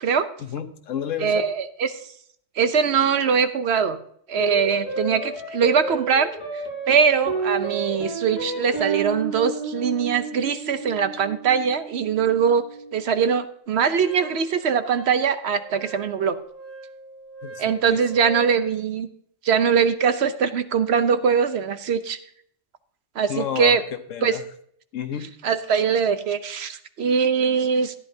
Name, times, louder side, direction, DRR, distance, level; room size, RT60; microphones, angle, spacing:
voice 1, 0.4-1.4 17.4-18.0 23.3-23.8 24.1-24.4 24.9-25.3, left 9 dB, 80° left, 8 dB, 1.3 m, -30 dB
voice 2, 1.2-1.9 2.6-4.0 4.3-6.3 6.9-12.6 12.9-16.4 17.6-19.1 19.4-22.2 23.2-23.8 24.2-24.4 25.4-27.9, right 6 dB, 60° right, 11 dB, 0.9 m, -22 dB
sound 1, 4.4-13.0, right 3 dB, 55° left, 5.9 m, -31 dB
Wind instrument woodwind instrument, 14.0-18.6, right 4 dB, 15° right, 5.2 m, -42 dB
14.0 x 10.0 x 2.7 m, 0.65 s
omnidirectional pair, 1.3 m